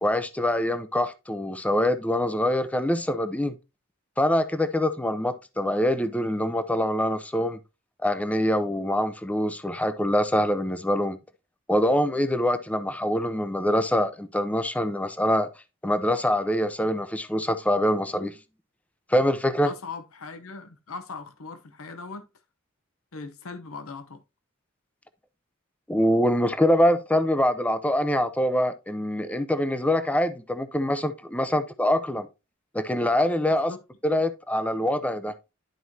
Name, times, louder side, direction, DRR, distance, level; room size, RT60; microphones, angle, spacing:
voice 1, 0.0-3.6 4.2-7.6 8.0-11.2 11.7-15.5 15.8-18.4 19.1-19.7 25.9-32.3 32.7-33.7 34.0-35.3, left 1 dB, 5° left, 0.6 m, -24 dB
voice 2, 19.6-22.2 23.1-24.2 33.5-33.8, left 4 dB, 85° left, 0.8 m, -39 dB
11.5 x 4.6 x 2.8 m
head